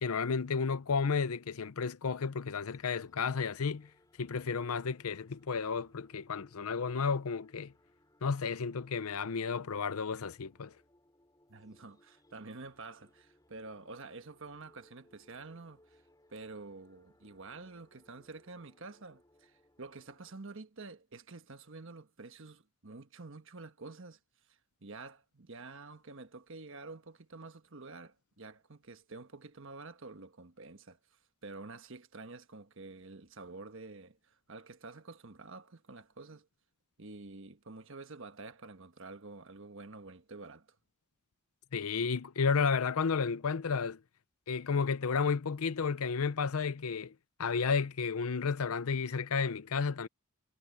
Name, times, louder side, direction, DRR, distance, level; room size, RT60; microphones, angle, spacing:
voice 1, 0.0-3.9 4.2-7.7 8.2-10.7 41.7-44.0 44.5-47.1 47.4-50.1, left 5 dB, 75° left, 0.6 m, -32 dB
sound 1, 2.6-20.4, left 1 dB, 15° left, 5.8 m, -68 dB
voice 2, 11.5-16.0 16.3-24.2 24.5-36.5 37.0-40.8, right 3 dB, 60° right, 1.3 m, -49 dB
head